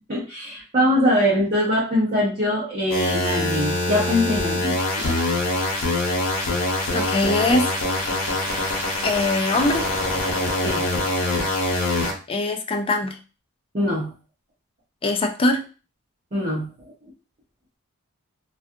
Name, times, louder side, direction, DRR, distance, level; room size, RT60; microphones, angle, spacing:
voice 1, 0.1-5.2 10.6-10.9 13.7-14.1 16.3-16.7, left 1 dB, 35° right, -5 dB, 0.7 m, -22 dB
sound 1, 2.9-12.1, left 2 dB, 75° left, 0.9 m, -24 dB
voice 2, 6.9-7.7 9.0-9.9 12.3-13.2 15.0-15.6, left 2 dB, 25° left, 5 dB, 0.4 m, -22 dB
2.4 x 2.4 x 2.6 m, 0.34 s
head